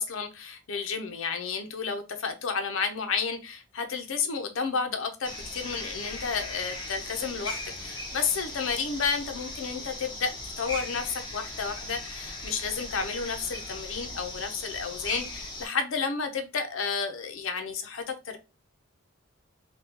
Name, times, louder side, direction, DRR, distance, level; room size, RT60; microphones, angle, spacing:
voice 1, 0.0-18.4, left 5 dB, 75° left, 0.6 m, -31 dB
sound 1, 5.2-15.7, left 2 dB, 20° left, 0.6 m, -38 dB
3.5 x 2.2 x 2.8 m
head